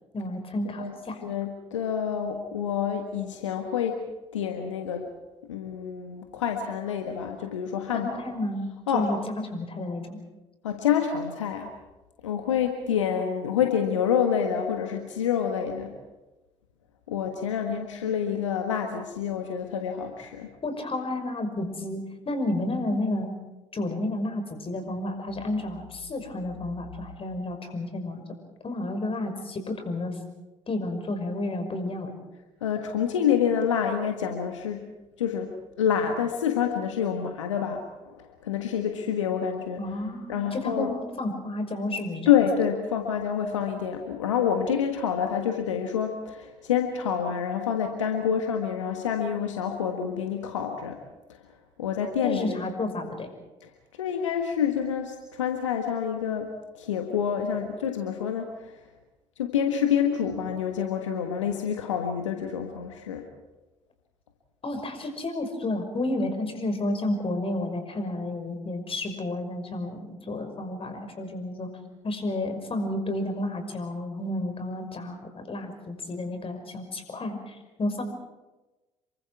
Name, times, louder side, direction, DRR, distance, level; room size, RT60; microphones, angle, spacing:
voice 1, 0.1-1.2 7.9-8.6 8.9-10.2 20.6-22.0 22.3-23.3 23.7-28.2 28.6-30.2 30.7-32.1 39.8-42.3 52.2-53.3 64.6-71.7 72.0-78.0, left 1 dB, 35° left, 6 dB, 5.6 m, -31 dB
voice 2, 0.6-1.0 1.2-4.0 4.3-5.1 5.4-8.2 8.9-9.1 10.6-11.7 12.2-16.0 17.1-20.5 32.6-34.9 35.2-39.8 40.3-40.9 42.3-51.0 51.8-52.6 53.6-53.7 54.0-58.7 59.4-63.3, left 8 dB, 80° left, 4 dB, 1.5 m, -27 dB
27.5 x 23.5 x 4.8 m, 1.1 s
figure-of-eight pair, 50°, 16 cm